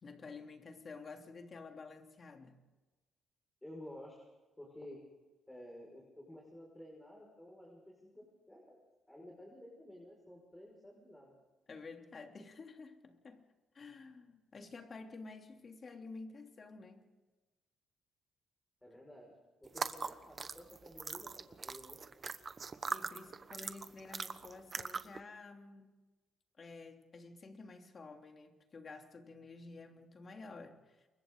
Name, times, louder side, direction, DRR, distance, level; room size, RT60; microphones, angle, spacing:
voice 1, 0.0-2.6 11.7-13.4 13.7-17.1 22.9-25.9 26.6-31.1, left 3 dB, 40° left, 3 dB, 3.2 m, -51 dB
voice 2, 3.6-4.3 4.6-5.0 5.5-6.0 6.3-8.8 9.1-11.3 18.8-19.3 19.6-22.0, left 1 dB, 10° left, -1 dB, 5.9 m, -53 dB
sound 1, 19.7-25.2, right 5 dB, 40° right, 1.2 m, -41 dB
28.5 x 23.5 x 4.0 m, 1.2 s
cardioid pair, 90°, 0 cm